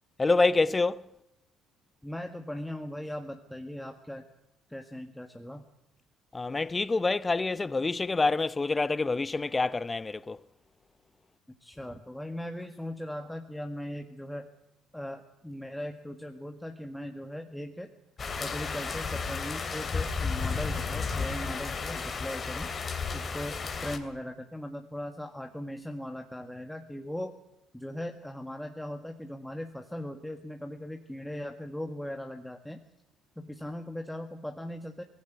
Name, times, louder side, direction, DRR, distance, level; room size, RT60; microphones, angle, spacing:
voice 1, 0.2-1.1 6.3-10.4, left 3 dB, 25° left, 0.8 m, -27 dB
voice 2, 2.0-4.2 4.7-5.7 11.6-14.5 14.9-17.9 18.4-22.7 23.1-27.3 27.7-32.8 33.4-35.0, left 1 dB, 5° left, 1.8 m, -39 dB
sound 1, 18.2-24.0, left 5 dB, 40° left, 2.9 m, -33 dB
19.0 x 16.0 x 9.4 m
hypercardioid pair, 55°, 0 cm